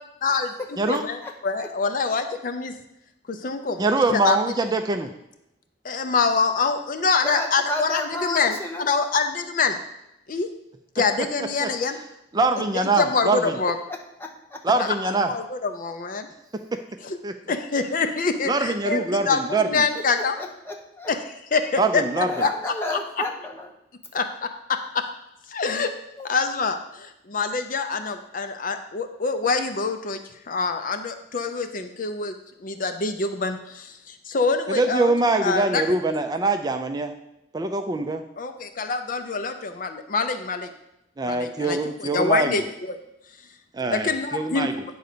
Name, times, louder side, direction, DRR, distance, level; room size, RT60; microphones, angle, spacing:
voice 1, 0.2-0.5 0.9-2.7 3.3-4.4 5.8-9.8 10.3-10.5 11.0-12.0 12.7-13.8 14.8-16.3 17.0-17.2 17.5-20.4 21.1-21.2 21.5-23.0 24.1-25.0 25.5-25.9 26.2-30.2 30.5-32.4 32.6-35.1 35.4-35.8 38.4-40.7 41.2-43.0 43.9-44.7, left 4 dB, 50° left, 8 dB, 0.6 m, -25 dB
voice 2, 0.9-1.3 1.6-1.7 7.2-8.9 13.6-14.6 19.9-21.1 22.3-23.7 26.2-26.3, left 1 dB, 15° left, 1 dB, 1.1 m, -32 dB
voice 3, 3.8-5.1 11.4-11.7 12.3-13.6 14.6-15.3 16.7-16.8 17.2-17.3 18.5-19.8 21.8-22.3 34.7-37.2 37.5-38.2 41.2-42.6 43.7-44.7, right 3 dB, 25° right, 7 dB, 0.4 m, -23 dB
9.3 x 3.9 x 6.7 m, 0.84 s
head